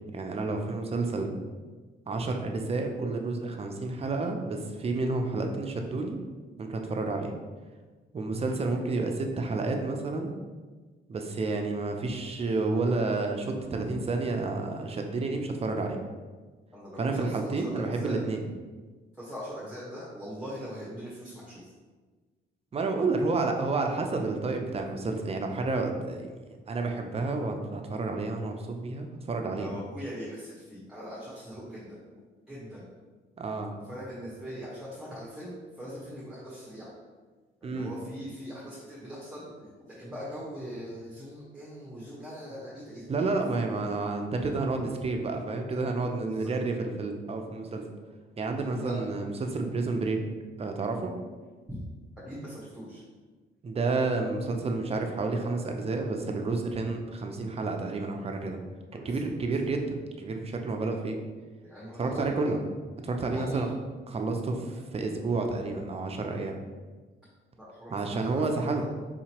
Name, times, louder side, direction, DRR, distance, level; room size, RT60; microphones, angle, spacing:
voice 1, 0.1-1.3 2.1-6.2 6.6-7.3 8.1-10.3 11.1-16.0 17.0-18.5 22.7-26.3 26.7-29.7 33.4-33.7 37.6-37.9 43.1-47.8 48.4-50.2 50.6-51.1 53.6-58.6 58.9-61.2 62.0-62.6 63.0-63.7 64.1-66.6 67.9-68.8, right 3 dB, 30° right, 3 dB, 0.5 m, -30 dB
voice 2, 16.7-18.1 19.1-21.7 29.5-32.0 32.5-32.8 33.8-36.9 37.6-43.3 46.3-46.5 48.6-49.1 51.7-51.8 52.2-53.0 58.9-59.4 61.6-62.5 63.3-63.7 67.6-68.6, equal, 5° right, -7 dB, 1.0 m, -41 dB
4.2 x 2.8 x 2.9 m, 1.4 s
cardioid pair, 90°, 20 cm